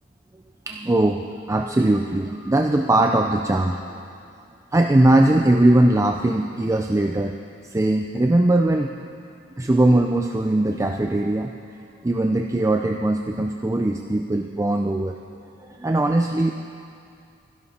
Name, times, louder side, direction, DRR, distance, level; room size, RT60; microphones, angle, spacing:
voice 1, 0.7-1.2 1.5-3.8 4.7-7.4 7.6-8.9 9.6-11.5 12.0-15.1 15.7-16.5, right 1 dB, 15° right, 3 dB, 0.4 m, -20 dB
23.5 x 11.0 x 4.3 m, 2.4 s
head